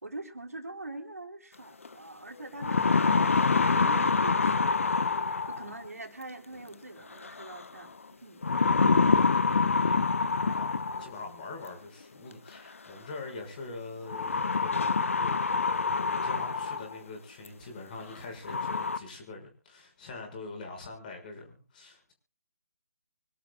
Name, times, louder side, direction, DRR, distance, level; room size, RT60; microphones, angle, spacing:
voice 1, 0.0-4.9 5.5-7.9 8.2-8.4, right 2 dB, 70° right, 5 dB, 3.9 m, -43 dB
sound 1, 1.8-1.9 2.4-5.8 7.2-7.6 8.4-11.2 12.5-12.6 14.1-17.0 17.5-17.6 18.1-18.2 18.5-19.0, left 4 dB, 55° left, 1.2 m, -26 dB
voice 2, 9.3-10.1 10.5-15.8 16.1-22.1, left 3 dB, 30° left, 4 dB, 6.2 m, -44 dB
26.0 x 12.0 x 2.4 m, 0.35 s
figure-of-eight pair, 145°, 8 cm